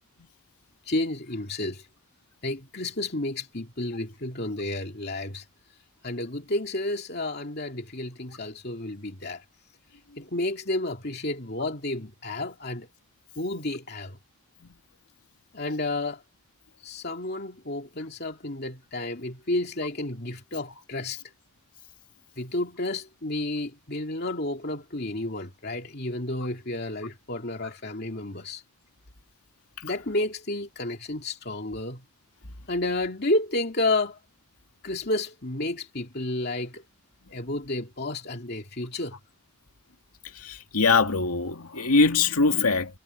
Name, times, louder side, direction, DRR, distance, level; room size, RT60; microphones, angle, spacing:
voice 1, 0.8-1.9 2.4-5.4 6.0-9.4 10.2-12.9 13.4-14.2 15.5-16.2 16.8-21.2 22.4-28.6 29.8-32.0 32.7-34.2 34.8-36.8 37.3-39.2, left 2 dB, 45° left, 2.6 m, -31 dB
voice 2, 40.7-42.9, left 4 dB, 90° left, 2.2 m, -21 dB
head